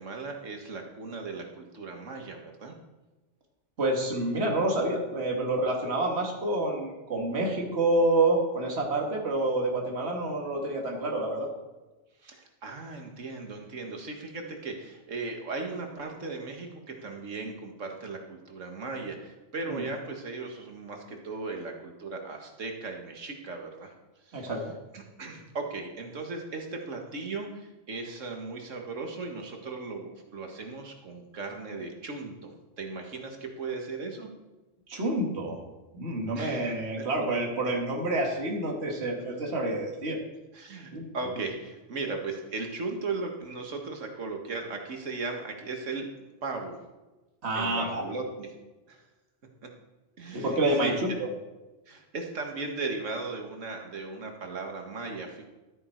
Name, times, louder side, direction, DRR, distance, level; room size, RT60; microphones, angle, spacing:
voice 1, 0.0-2.8 12.2-23.9 24.3-24.5 24.9-34.3 36.4-36.6 40.5-46.1 46.4-46.8 47.6-48.5 48.9-49.0 49.6-49.7 50.2-51.0 51.9-55.5, right 3 dB, 90° right, 3 dB, 1.9 m, -37 dB
voice 2, 3.8-11.5 19.7-19.8 24.3-24.7 34.9-35.6 35.9-40.2 40.9-41.1 47.4-48.0 50.3-51.3, right 2 dB, 60° right, 0 dB, 2.0 m, -28 dB
13.0 x 8.7 x 4.5 m, 1.1 s
omnidirectional pair, 1.3 m